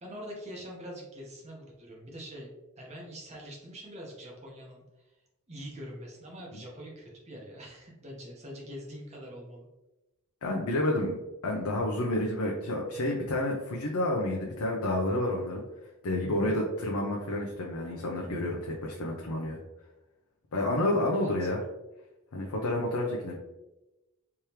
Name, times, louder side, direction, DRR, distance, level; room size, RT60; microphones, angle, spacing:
voice 1, 0.0-2.5 2.8-4.8 5.5-9.7 16.2-16.6 21.1-21.5, equal, 30° right, -2 dB, 1.0 m, -44 dB
voice 2, 10.4-11.2 11.4-15.6 16.0-19.6 20.5-21.6 22.3-23.4, left 1 dB, 80° left, -1 dB, 0.6 m, -29 dB
3.5 x 3.2 x 2.9 m, 1.0 s
head